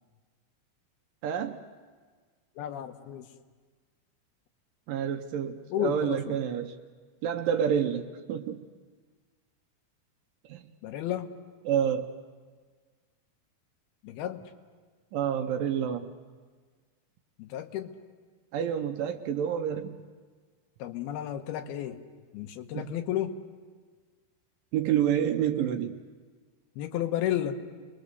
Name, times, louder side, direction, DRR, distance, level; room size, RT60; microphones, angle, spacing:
voice 1, 1.2-1.6 4.9-6.8 7.2-8.7 10.5-10.6 11.7-12.1 15.1-16.1 18.5-20.0 22.7-23.0 24.7-26.0, right 9 dB, 75° right, 6 dB, 2.3 m, -28 dB
voice 2, 2.6-3.3 5.7-6.4 10.8-11.3 14.0-14.4 17.4-17.9 20.8-22.0 22.3-23.3 26.8-27.6, left 11 dB, 85° left, 7 dB, 3.0 m, -32 dB
30.0 x 21.5 x 6.8 m, 1.5 s
omnidirectional pair, 4.4 m